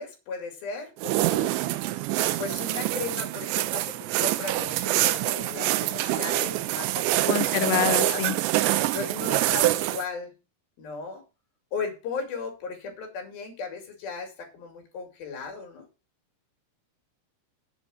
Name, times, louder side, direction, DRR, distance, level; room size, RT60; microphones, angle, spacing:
voice 1, 0.0-1.5 2.4-3.9 4.2-7.3 7.6-8.2 8.9-10.3 10.8-11.2 11.7-15.9, left 4 dB, 60° left, 4.3 m, -36 dB
sound 1, 1.0-10.0, right 16 dB, 85° right, 2.9 m, -25 dB
voice 2, 7.3-8.4, left 18 dB, 80° left, 2.6 m, -26 dB
8.9 x 5.5 x 7.7 m
omnidirectional pair, 5.1 m